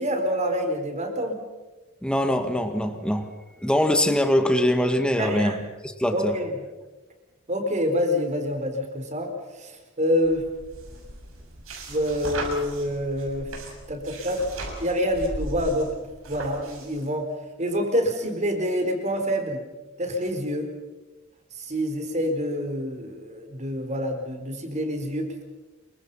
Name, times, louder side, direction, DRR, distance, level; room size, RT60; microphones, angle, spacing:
voice 1, 0.0-1.4 5.2-5.6 6.1-6.5 7.5-10.5 11.9-13.5 13.9-14.4 14.8-17.3 17.6-19.6 20.0-20.7 21.6-25.4, equal, 35° right, 5 dB, 4.4 m, -27 dB
voice 2, 2.0-3.3 3.6-5.5 6.0-6.3, left 1 dB, 5° left, 6 dB, 1.9 m, -22 dB
sound 1, 10.2-17.1, right 2 dB, 85° right, 6.7 m, -37 dB
28.0 x 24.0 x 5.7 m, 1.2 s
head